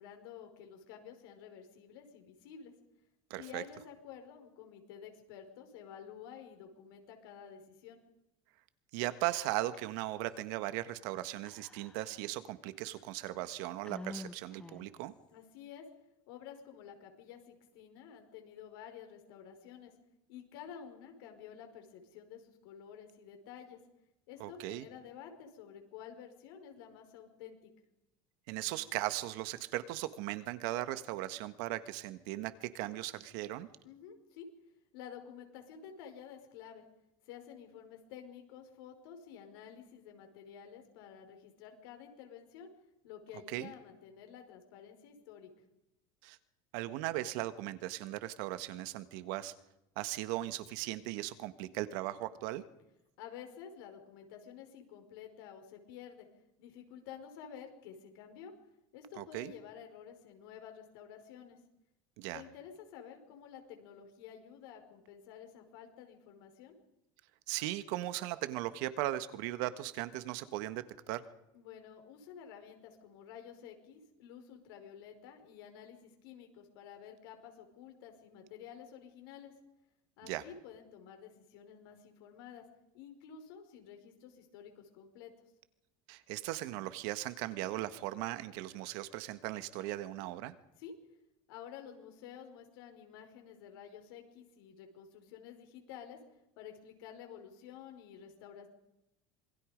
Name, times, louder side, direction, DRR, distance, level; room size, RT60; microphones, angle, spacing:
voice 1, 0.0-2.7 3.4-8.0 15.3-15.9 16.3-19.9 20.3-23.8 24.3-27.7 33.8-34.5 34.9-36.8 37.2-42.7 43.0-45.5 53.2-56.3 56.6-58.5 58.9-61.6 62.3-66.8 71.5-79.5 80.2-82.7 82.9-85.3 90.8-90.9 91.5-96.2 96.6-98.7, left 8 dB, 85° left, 4 dB, 5.3 m, -51 dB
voice 2, 3.3-3.6 8.9-15.1 24.4-24.9 28.5-33.7 43.5-43.7 46.2-46.4 46.7-49.5 49.9-52.6 59.2-59.5 62.2-62.4 67.5-71.2 80.2-80.4 86.1-90.5, right 15 dB, 70° right, 12 dB, 1.5 m, -38 dB
Whispering, 9.2-9.9 10.2-10.3 11.5-12.3 12.9-13.0 13.8-15.0, left 2 dB, 10° left, 1.1 m, -48 dB
26.5 x 22.5 x 5.3 m, 0.89 s
cardioid pair, 165°, 12 cm